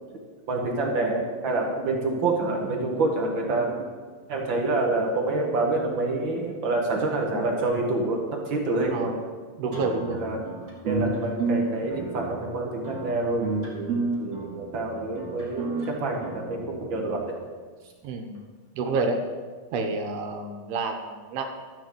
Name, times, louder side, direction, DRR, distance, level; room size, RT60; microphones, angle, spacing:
voice 1, 0.5-3.9 4.3-9.2 10.1-10.4 10.8-17.3, right 2 dB, 60° right, 0 dB, 1.2 m, -27 dB
voice 2, 8.9-9.2 9.6-10.2 18.0-18.4 18.8-19.2 19.7-21.6, right 3 dB, 80° right, 4 dB, 2.9 m, -29 dB
sound 1, 9.7-17.1, right 3 dB, 20° right, 2.3 m, -31 dB
13.0 x 5.8 x 7.7 m, 1.5 s
omnidirectional pair, 4.4 m